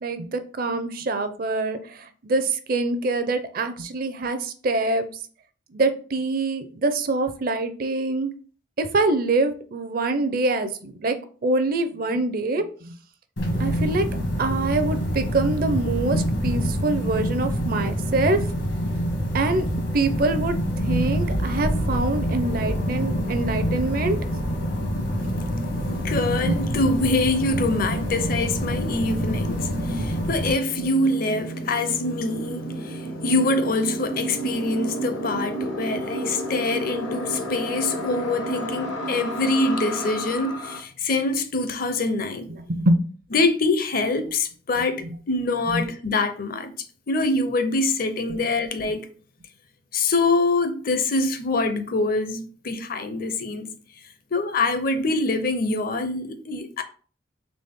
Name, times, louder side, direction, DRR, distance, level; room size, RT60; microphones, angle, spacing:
voice 1, 0.0-5.1 5.7-8.3 8.8-12.9 13.6-14.1 14.4-18.6 19.3-19.7 19.9-24.2 26.4-26.6 30.8-30.9 42.7-43.0 45.7-45.9, right 2 dB, 50° right, 0.5 m, -25 dB
sound 1, 13.4-30.5, equal, 75° left, 1.3 m, -26 dB
voice 2, 25.2-42.5 43.3-49.1 49.9-53.7 54.3-56.8, left 2 dB, 50° left, 0.6 m, -25 dB
sound 2, 27.1-40.8, equal, 90° left, 1.1 m, -33 dB
4.1 x 3.5 x 3.5 m
head